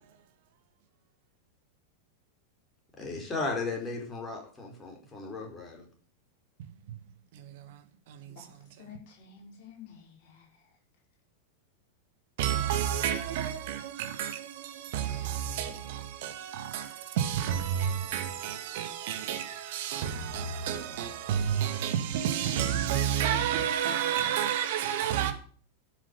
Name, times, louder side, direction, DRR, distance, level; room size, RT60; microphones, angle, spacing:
voice 1, 3.0-5.9, left 3 dB, 15° left, 4.7 m, -35 dB
voice 2, 7.3-7.8 8.1-8.3 12.4-25.3, right 9 dB, 50° right, 2.0 m, -30 dB
voice 3, 8.3-10.8 15.7-15.8, left 7 dB, 45° left, 5.7 m, -51 dB
12.5 x 7.4 x 6.9 m
figure-of-eight pair, 90°, 0 cm